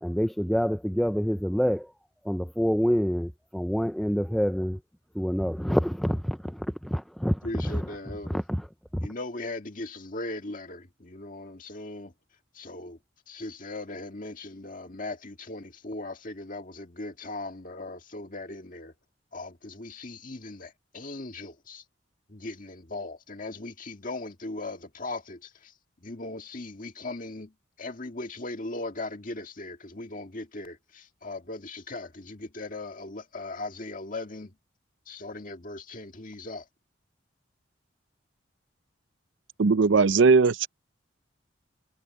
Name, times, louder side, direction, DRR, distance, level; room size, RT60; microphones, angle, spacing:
voice 1, 0.0-1.9 2.2-4.8 5.1-7.9 8.3-8.7 8.9-9.1, equal, ahead, 0.4 m, -27 dB
voice 2, 7.4-8.4 9.0-12.1 12.5-13.0 13.3-18.9 19.3-21.8 22.3-25.7 26.0-27.5 27.8-34.5 35.1-36.7, left 2 dB, 45° left, 1.8 m, -38 dB
voice 3, 39.6-40.7, right 4 dB, 75° right, 0.6 m, -19 dB
head